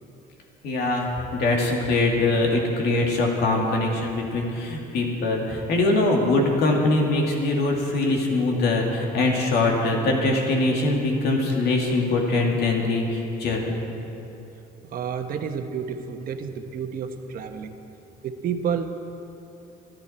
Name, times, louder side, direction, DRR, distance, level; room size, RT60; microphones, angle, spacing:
voice 1, 0.6-13.8, left 2 dB, 70° left, 0 dB, 2.5 m, -23 dB
voice 2, 14.9-17.7 18.2-18.8, right 7 dB, 60° right, 6 dB, 1.2 m, -30 dB
25.0 x 10.5 x 4.4 m, 2.9 s
cardioid pair, 110°, 17 cm